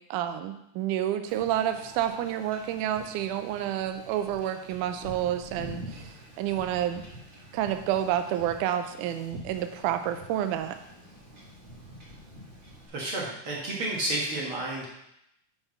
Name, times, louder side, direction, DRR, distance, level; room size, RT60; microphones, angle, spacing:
voice 1, 0.0-7.0 7.5-10.8, right 11 dB, 80° right, 8 dB, 2.0 m, -29 dB
Wind / Ocean / Boat Water vehicle, 1.3-12.9, equal, 25° right, 1.7 m, -46 dB
voice 2, 12.9-14.9, right 1 dB, 50° right, -4 dB, 1.8 m, -31 dB
6.0 x 5.6 x 5.7 m, 0.81 s
omnidirectional pair, 3.8 m